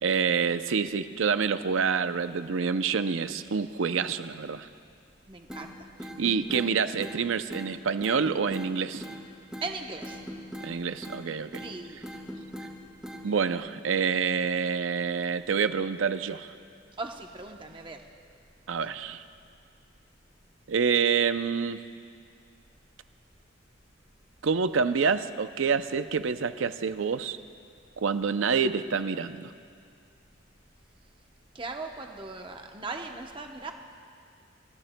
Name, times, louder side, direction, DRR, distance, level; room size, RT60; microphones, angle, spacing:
voice 1, 0.0-4.7 6.2-9.0 10.6-11.7 13.2-16.5 18.7-19.2 20.7-21.8 24.4-27.4 28.0-29.5, right 6 dB, 80° right, 11 dB, 0.5 m, -27 dB
voice 2, 5.3-5.7 9.6-10.2 11.6-12.0 17.0-18.0 31.5-33.7, right 3 dB, 25° right, 3 dB, 0.9 m, -38 dB
sound 1, 5.5-5.7 6.0-6.7 7.0-7.2 7.5-7.7 8.0-8.7 9.0-9.2 9.5-9.7 10.0-10.7 11.0-11.2 11.5-11.7 12.0-12.7 13.0-13.2, equal, 5° right, 1.9 m, -39 dB
27.0 x 15.0 x 2.2 m, 2.3 s
head